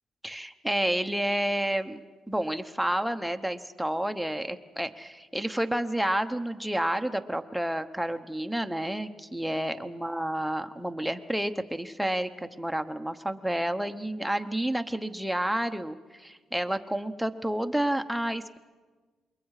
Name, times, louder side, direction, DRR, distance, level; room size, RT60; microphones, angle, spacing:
voice 1, 0.2-2.0 2.3-18.6, right 1 dB, ahead, 7 dB, 1.0 m, -30 dB
28.0 x 22.5 x 4.9 m, 1.3 s
cardioid pair, 105°, 0 cm